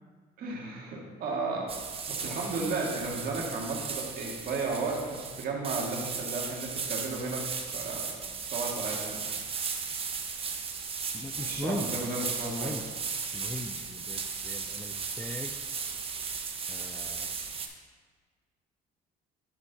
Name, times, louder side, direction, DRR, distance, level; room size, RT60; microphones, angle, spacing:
voice 1, 0.4-1.8 2.1-7.5 7.7-8.1 8.4-9.3 11.4-12.8, right 3 dB, 60° right, -1 dB, 1.9 m, -34 dB
sound 1, 1.7-17.7, right 5 dB, 35° right, 0.8 m, -36 dB
voice 2, 11.1-11.9 12.3-12.8 13.3-15.5 16.7-17.3, left 2 dB, 10° left, 5 dB, 0.4 m, -39 dB
11.5 x 4.4 x 4.1 m, 1.5 s
cardioid pair, 110°, 17 cm